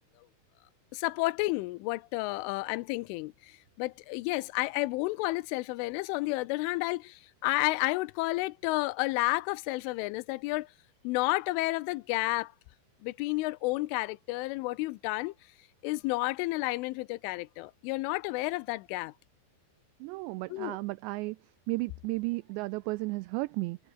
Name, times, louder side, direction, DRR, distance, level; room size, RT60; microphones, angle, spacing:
voice 1, 0.9-10.7 11.0-12.5 13.0-15.3 15.8-19.1 20.5-20.8, left 21 dB, 85° left, 3.2 m, -31 dB
voice 2, 20.0-21.4 21.7-23.8, right 23 dB, 90° right, 2.5 m, -33 dB
omnidirectional pair, 5.6 m